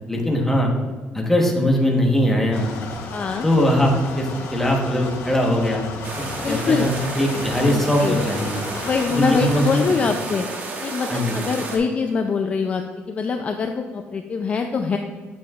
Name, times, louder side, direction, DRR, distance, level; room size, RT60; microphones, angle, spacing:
voice 1, 0.1-0.7 1.1-2.7 3.4-5.9 6.5-8.5 9.1-9.9 11.1-11.4, equal, 5° left, -1 dB, 1.1 m, -20 dB
sound 1, 2.5-9.9, left 3 dB, 70° left, 1.1 m, -34 dB
voice 2, 3.1-3.5 6.4-6.9 7.3-8.2 8.8-10.5 10.8-15.0, left 5 dB, 30° left, 5 dB, 0.4 m, -24 dB
sound 2, 6.0-11.8, right 3 dB, 40° right, 1.1 m, -32 dB
8.5 x 7.0 x 2.4 m, 1.4 s
cardioid pair, 155°, 5 cm